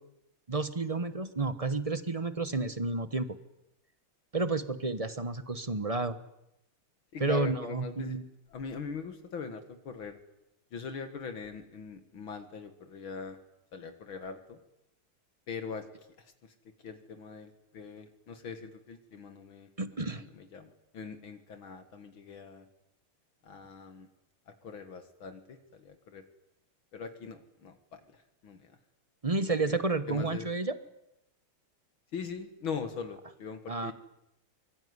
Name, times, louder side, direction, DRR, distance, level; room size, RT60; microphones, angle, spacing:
voice 1, 0.5-3.4 4.3-6.2 7.2-8.2 19.8-20.2 29.2-30.8 33.7-33.9, right 3 dB, 25° right, 12 dB, 0.8 m, -31 dB
voice 2, 7.1-8.2 8.5-10.2 10.7-13.4 13.7-14.6 15.5-15.9 16.4-16.5 16.8-22.7 23.4-24.1 24.5-26.2 26.9-28.7 29.5-29.8 30.1-30.5 32.1-33.9, left 5 dB, 65° left, 8 dB, 2.5 m, -42 dB
24.5 x 22.5 x 9.6 m, 0.85 s
omnidirectional pair, 2.4 m